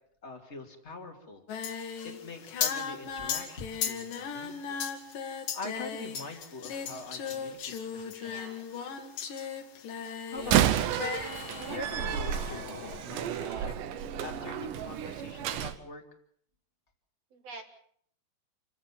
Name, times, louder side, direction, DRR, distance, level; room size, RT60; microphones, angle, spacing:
voice 1, 0.2-1.4 2.0-4.8 5.5-8.4 10.3-11.0 11.7-13.8 14.2-16.0, left 3 dB, 20° left, 5 dB, 1.9 m, -44 dB
Singing, 1.5-10.6 10.9-11.8, left 7 dB, 60° left, 3.2 m, -36 dB
voice 2, 8.2-8.9 17.3-17.6, right 3 dB, 50° right, 6 dB, 2.2 m, -47 dB
Slam, 10.4-15.8, right 10 dB, 70° right, 2.3 m, -31 dB
sound 1, 10.9-15.2, left 6 dB, 80° left, 5.1 m, -47 dB
28.0 x 16.0 x 7.3 m, 0.63 s
omnidirectional pair, 4.8 m